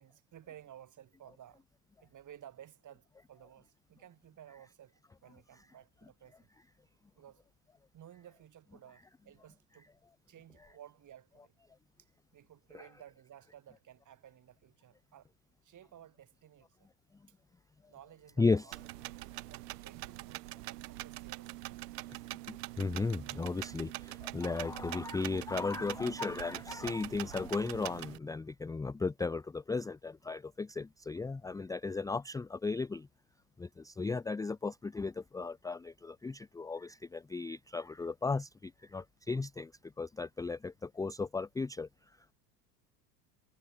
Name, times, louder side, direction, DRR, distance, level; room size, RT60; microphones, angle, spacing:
voice 1, 0.0-1.6 2.0-6.5 7.2-7.4 7.9-9.9 10.3-11.6 12.3-15.3 15.6-16.9 17.9-18.8 19.1-21.8, right 10 dB, 35° right, 6.5 m, -56 dB
sound 1, 18.7-28.2, right 18 dB, 70° right, 3.2 m, -44 dB
voice 2, 22.5-33.1 33.6-39.7 40.0-41.9, left 4 dB, 5° left, 0.6 m, -35 dB
hypercardioid pair, 90°, 49 cm